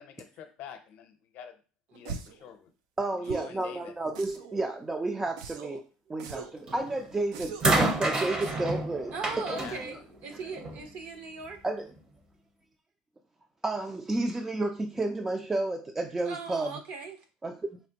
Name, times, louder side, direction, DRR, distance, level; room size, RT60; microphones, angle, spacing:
voice 1, 0.0-1.6 1.9-2.7 3.2-3.9 9.5-9.8, left 8 dB, 60° left, 7 dB, 0.6 m, -46 dB
sound 1, 2.0-2.4 3.2-3.6 4.1-4.6 5.4-5.8 6.2-6.6 7.3-7.8 8.4-8.8, right 6 dB, 80° right, 0.4 m, -41 dB
voice 2, 3.0-5.8 6.1-9.7 11.6-11.9 13.6-16.8 17.4-17.8, right 2 dB, 15° right, 5 dB, 0.3 m, -31 dB
sound 2, 6.7-7.0 7.6-10.9 11.9-12.0, right 2 dB, 30° right, 0.7 m, -29 dB
voice 3, 9.1-11.6 16.2-17.2, right 4 dB, 60° right, 5 dB, 0.8 m, -39 dB
4.1 x 2.1 x 2.8 m, 0.35 s
supercardioid pair, 105°, 3 cm